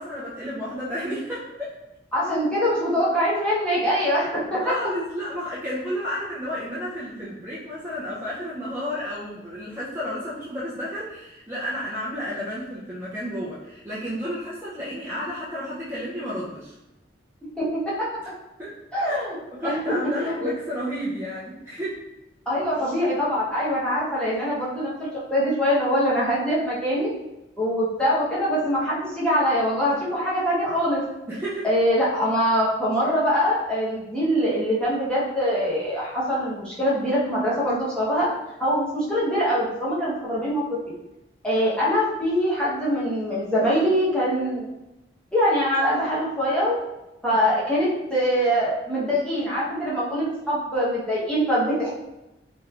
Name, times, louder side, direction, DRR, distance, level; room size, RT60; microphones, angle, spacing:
voice 1, 0.0-1.7 4.5-16.8 18.6-18.7 19.1-19.2 19.5-22.0 31.3-31.7 41.6-41.7 47.3-47.5, equal, 15° right, -9 dB, 0.5 m, -32 dB
voice 2, 2.1-4.6 17.6-18.1 18.9-19.4 19.6-20.5 22.5-27.1 27.6-31.0 31.6-38.3 38.6-40.6 41.4-44.7 45.3-46.8 47.2-51.9, equal, 5° left, -9 dB, 0.9 m, -23 dB
3.2 x 3.1 x 2.4 m, 0.94 s
head